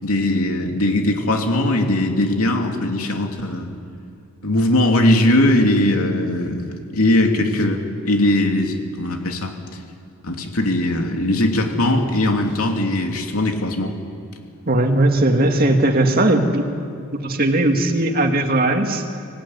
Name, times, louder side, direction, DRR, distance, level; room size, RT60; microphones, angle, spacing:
voice 1, 0.0-3.7 4.4-9.5 10.2-14.0, left 1 dB, 80° left, 3 dB, 2.9 m, -20 dB
voice 2, 14.7-16.6 17.1-19.0, right 1 dB, 40° right, 4 dB, 2.1 m, -18 dB
25.5 x 17.0 x 9.7 m, 2.7 s
head